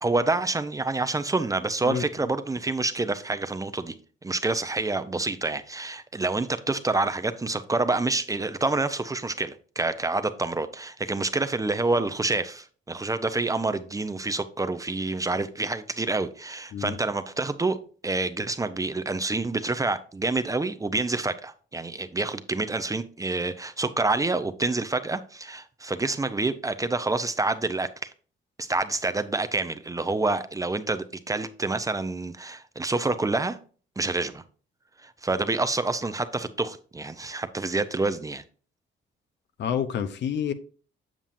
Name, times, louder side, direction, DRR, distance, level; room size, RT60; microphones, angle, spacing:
voice 1, 0.0-3.9 4.2-17.8 18.0-28.1 28.6-33.6 34.0-34.4 35.0-38.4, right 3 dB, 15° right, 0.6 m, -27 dB
voice 2, 39.6-40.5, left 8 dB, 65° left, 0.7 m, -28 dB
7.4 x 7.0 x 2.6 m
cardioid pair, 90°, 20 cm